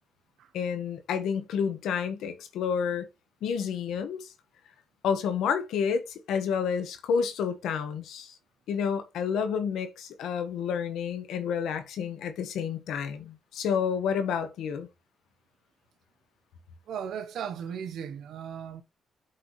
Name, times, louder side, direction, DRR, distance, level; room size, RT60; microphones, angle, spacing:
voice 1, 0.5-3.0 3.4-4.3 5.0-8.3 8.7-14.9, left 7 dB, 80° left, 1.3 m, -30 dB
voice 2, 16.9-18.8, right 8 dB, 75° right, 0.9 m, -36 dB
8.7 x 4.7 x 3.1 m
cardioid pair, 80°, 0 cm